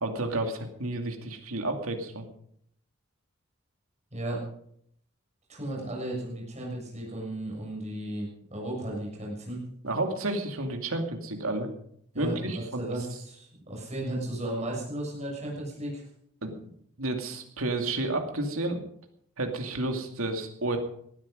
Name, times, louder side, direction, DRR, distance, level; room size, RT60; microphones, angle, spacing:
voice 1, 0.0-2.2 9.8-11.7 12.1-12.8 16.4-16.7 17.0-18.8 19.4-20.8, right 2 dB, 75° right, 4 dB, 2.6 m, -31 dB
voice 2, 5.5-9.6 12.1-16.0, right 1 dB, 30° right, -3 dB, 6.9 m, -35 dB
18.5 x 13.0 x 5.2 m, 0.69 s
head